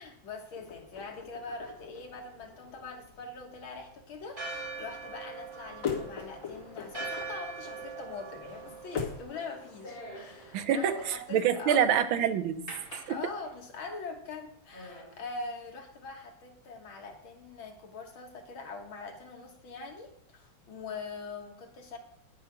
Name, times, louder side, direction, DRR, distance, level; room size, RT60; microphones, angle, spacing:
voice 1, 0.0-11.9 13.1-22.0, left 4 dB, 80° left, 3 dB, 2.3 m, -43 dB
sound 1, 0.5-9.3, left 6 dB, 60° left, 3.0 m, -42 dB
Church bell, 4.3-10.6, right 4 dB, 30° right, 5.7 m, -43 dB
sound 2, 7.6-12.0 12.7-13.8 14.3-14.4 14.7-15.2, equal, 15° left, 4.8 m, -47 dB
voice 2, 10.5-13.2, right 8 dB, 80° right, 9 dB, 1.6 m, -27 dB
10.5 x 6.8 x 5.9 m, 0.66 s
omnidirectional pair, 2.2 m